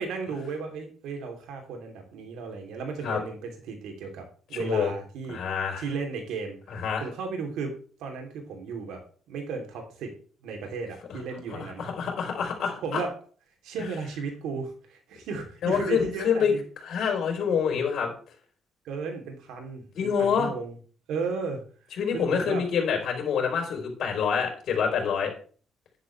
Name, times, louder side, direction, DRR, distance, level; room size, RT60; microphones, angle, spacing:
voice 1, 0.0-5.4 5.8-6.6 7.0-9.0 9.3-10.2 10.4-11.9 12.8-13.1 13.6-16.6 18.8-20.8 21.1-21.6 22.1-22.6, right 5 dB, 90° right, 3 dB, 3.1 m, -35 dB
voice 2, 4.6-4.9 5.3-5.8 6.7-7.0 11.1-11.2 11.5-13.0 15.6-16.5 16.8-18.1 19.9-20.5 22.0-25.3, left 7 dB, 70° left, 1 dB, 3.9 m, -26 dB
11.0 x 9.8 x 3.3 m, 0.42 s
cardioid pair, 90°, 0 cm